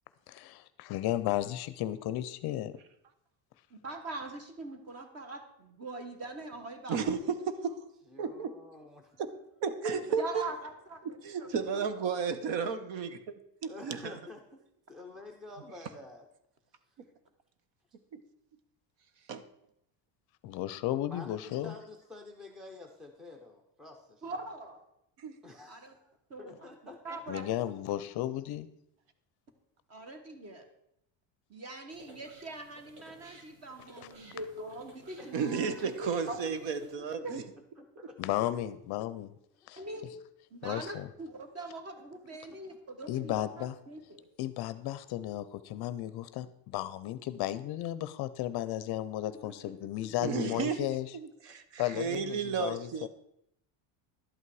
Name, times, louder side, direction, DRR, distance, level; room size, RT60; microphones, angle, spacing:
voice 1, 0.3-2.8 20.4-21.7 27.3-28.7 34.3-34.4 38.2-39.3 39.7-39.8 40.6-41.1 43.1-43.7 44.4-51.1 51.8-53.1, left 13 dB, 50° left, 14 dB, 0.5 m, -34 dB
voice 2, 3.7-7.2 9.8-11.0 11.4-12.1 24.2-24.8 25.7-25.9 26.3-27.5 29.9-30.6 31.5-36.4 37.2-37.3 39.8-40.2 40.5-44.3, right 2 dB, 30° right, 7 dB, 1.3 m, -43 dB
voice 3, 6.9-7.8 8.2-8.6 9.2-9.3 9.6-10.4 11.0-13.2 13.6-14.2 18.1-18.2 19.3-19.4 25.2-25.4 35.3-37.4 50.2-53.1, right 6 dB, 60° right, 11 dB, 1.1 m, -33 dB
voice 4, 8.1-9.2 9.9-10.0 12.5-12.7 13.6-14.6 14.9-16.3 21.0-24.2 25.4-26.1 26.4-27.4 35.2-35.9 36.8-37.3 37.8-38.2 42.3-42.4 48.7-48.8 49.3-50.3, left 2 dB, ahead, 4 dB, 0.5 m, -49 dB
steam engine, 31.9-36.9, right 2 dB, 80° right, 2.8 m, -56 dB
11.5 x 8.5 x 4.7 m, 0.79 s
cardioid pair, 175°, 50 cm